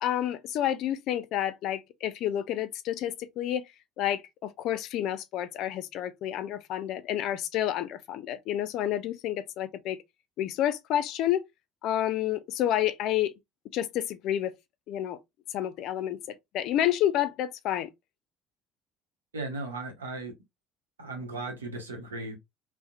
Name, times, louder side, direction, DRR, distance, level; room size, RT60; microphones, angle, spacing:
voice 1, 0.0-3.7 4.0-10.0 10.4-11.5 11.8-13.3 13.7-14.5 14.9-15.2 15.5-17.9, left 11 dB, 60° left, 0.4 m, -29 dB
voice 2, 19.3-20.3 21.0-22.4, right 2 dB, 90° right, 0.7 m, -36 dB
2.7 x 2.0 x 2.4 m
hypercardioid pair, 60°, 0 cm